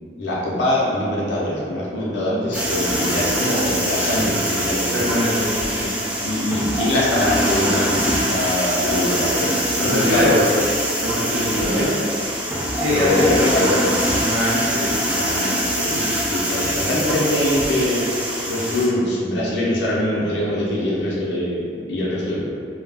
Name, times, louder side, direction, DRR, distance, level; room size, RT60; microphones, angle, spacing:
voice 1, 0.2-4.9 6.2-10.5 11.6-11.9 12.9-13.9 15.8-18.0 18.5-21.6 21.9-22.4, left 1 dB, 75° left, -6 dB, 0.5 m, -23 dB
sound 1, 2.5-18.9, equal, 5° right, 0.3 m, -23 dB
voice 2, 4.8-5.9 9.8-10.4 11.0-11.9 12.7-15.7, left 1 dB, 90° right, -7 dB, 0.6 m, -23 dB
2.3 x 2.0 x 3.3 m, 2.5 s
head